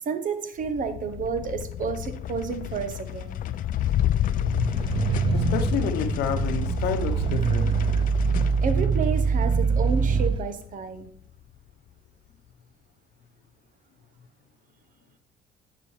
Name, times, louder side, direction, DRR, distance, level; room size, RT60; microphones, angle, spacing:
voice 1, 0.0-3.4 8.6-11.1, right 5 dB, 50° right, 9 dB, 1.0 m, -30 dB
sound 1, 0.6-11.2, left 11 dB, 55° left, 0.4 m, -30 dB
sound 2, 4.3-10.4, right 5 dB, 30° right, 0.4 m, -24 dB
voice 2, 5.3-7.8, left 8 dB, 80° left, 8 dB, 0.9 m, -30 dB
10.0 x 6.0 x 3.2 m, 0.63 s
cardioid pair, 110°, 17 cm